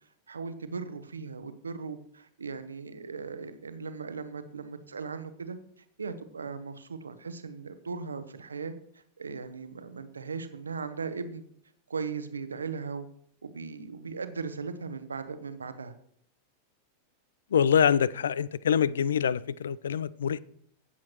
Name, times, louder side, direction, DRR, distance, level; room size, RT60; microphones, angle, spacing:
voice 1, 0.3-5.6 6.0-11.4 11.9-13.1 13.4-15.9, right 5 dB, 75° right, 0.9 m, -38 dB
voice 2, 17.5-20.4, left 8 dB, 65° left, 0.3 m, -25 dB
16.5 x 7.3 x 3.0 m
figure-of-eight pair, 90°, 0 cm